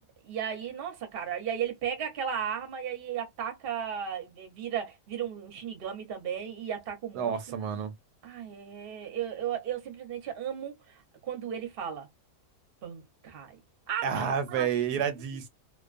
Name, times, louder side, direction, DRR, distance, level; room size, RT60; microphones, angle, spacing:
voice 1, 0.2-7.6 8.2-12.1 12.8-13.6 13.9-14.7, right 8 dB, 45° right, 0.8 m, -35 dB
voice 2, 7.1-7.9 14.0-15.5, right 7 dB, 85° right, 1.1 m, -29 dB
2.5 x 2.2 x 2.4 m
omnidirectional pair, 1.7 m